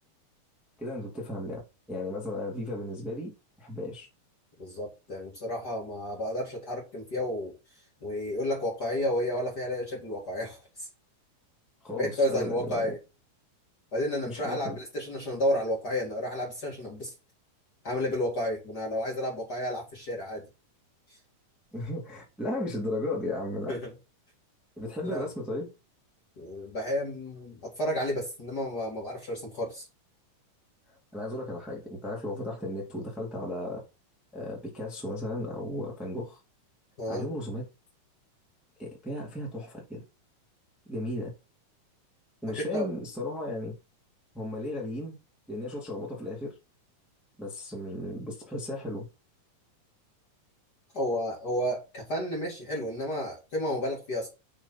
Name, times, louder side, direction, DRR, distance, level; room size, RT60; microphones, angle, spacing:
voice 1, 0.8-3.3 3.6-4.1 11.8-12.9 14.3-14.8 21.7-23.8 24.8-25.7 31.1-33.8 34.3-36.4 37.1-37.7 38.8-40.0 40.9-41.3 42.4-43.7 44.3-45.1 45.5-46.6 47.4-49.1, left 1 dB, ahead, 2.1 m, -35 dB
voice 2, 4.6-7.5 8.0-10.9 11.9-13.0 13.9-17.1 17.8-20.4 23.7-23.9 25.0-25.3 26.4-29.9 37.0-37.3 42.6-42.9 50.9-54.3, left 1 dB, 35° left, 2.5 m, -31 dB
6.4 x 6.0 x 4.3 m
omnidirectional pair, 3.6 m